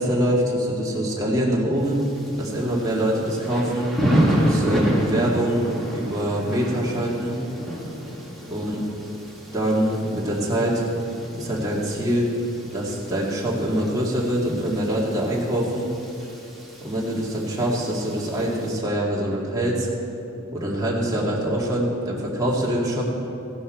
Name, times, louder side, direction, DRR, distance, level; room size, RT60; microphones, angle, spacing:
voice 1, 0.0-2.0 2.4-4.0 4.3-5.7 5.9-7.4 8.5-8.8 9.5-10.8 11.3-12.3 12.7-15.9 16.8-19.9 20.5-23.0, right 1 dB, 15° right, -4 dB, 2.2 m, -24 dB
Thunder / Rain, 1.8-18.7, equal, ahead, 2.0 m, -30 dB
16.0 x 11.0 x 4.4 m, 2.8 s
head